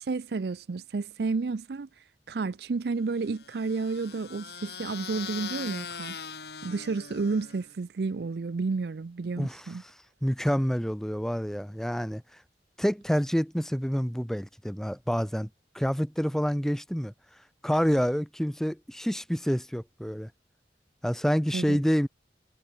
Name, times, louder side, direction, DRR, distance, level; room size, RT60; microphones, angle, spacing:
voice 1, 0.0-1.9 2.3-6.1 6.6-9.8 21.5-21.8, right 4 dB, 65° right, 0.5 m, -31 dB
sound 1, 3.2-7.7, left 7 dB, 70° left, 4.2 m, -41 dB
voice 2, 10.2-12.2 12.8-15.5 15.7-17.1 17.6-20.3 21.0-22.1, equal, 5° left, 1.1 m, -27 dB
head